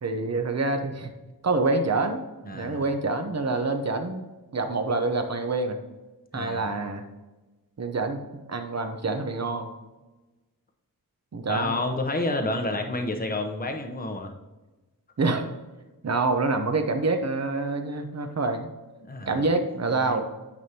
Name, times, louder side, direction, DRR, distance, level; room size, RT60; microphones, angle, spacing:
voice 1, 0.0-1.1 1.4-5.8 6.3-7.0 7.8-8.2 8.5-9.7 11.3-11.7 15.2-15.5 16.0-18.7 19.3-20.3, right 3 dB, 45° right, 6 dB, 0.9 m, -26 dB
voice 2, 2.5-2.8 6.3-6.7 11.5-14.3 19.1-19.4 20.0-20.2, left 2 dB, 25° left, 4 dB, 0.9 m, -29 dB
9.6 x 5.3 x 2.9 m, 1.1 s
wide cardioid pair, 90°, 37 cm